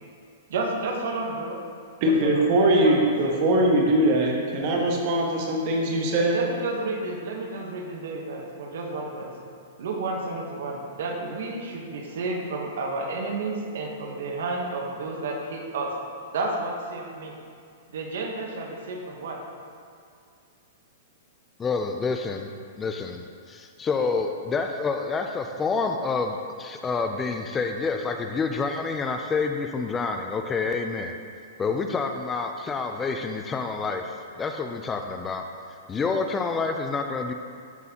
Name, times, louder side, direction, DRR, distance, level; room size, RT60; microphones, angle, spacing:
voice 1, 0.5-1.6 2.0-3.7 6.1-9.4 9.8-16.0 16.3-17.4 17.9-19.5, right 3 dB, 70° right, 2 dB, 1.0 m, -31 dB
voice 2, 2.0-6.3, right 1 dB, 45° right, -1 dB, 1.3 m, -21 dB
voice 3, 21.6-22.5 22.8-31.2 31.6-35.4 35.9-37.3, left 4 dB, 15° left, 5 dB, 0.3 m, -28 dB
12.0 x 4.0 x 2.8 m, 2.3 s
hypercardioid pair, 140°, 0 cm